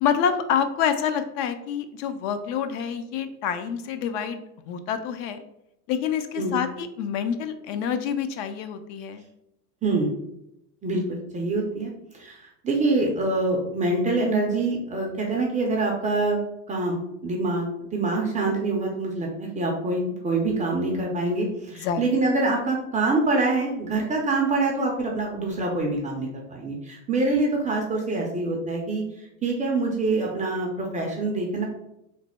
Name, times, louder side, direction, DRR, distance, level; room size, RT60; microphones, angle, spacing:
voice 1, 0.0-5.4 5.9-9.2 21.8-22.0, left 8 dB, 50° left, 9 dB, 0.5 m, -27 dB
voice 2, 10.8-12.4 12.6-16.4 16.7-31.6, right 2 dB, 15° right, -1 dB, 0.4 m, -25 dB
3.2 x 2.1 x 4.1 m, 0.83 s
hypercardioid pair, 105°, 48 cm